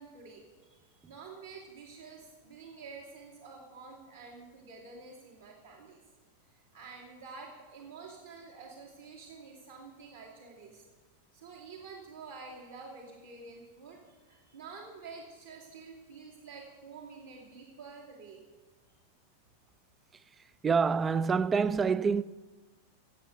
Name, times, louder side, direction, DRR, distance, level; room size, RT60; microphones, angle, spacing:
voice 1, 0.0-6.0 6.5-10.8 11.3-18.4, right 4 dB, 75° right, 2.6 m, -49 dB
voice 2, 20.6-22.2, right 5 dB, 20° right, 0.4 m, -26 dB
16.0 x 8.1 x 6.5 m
figure-of-eight pair, 90°, 0 cm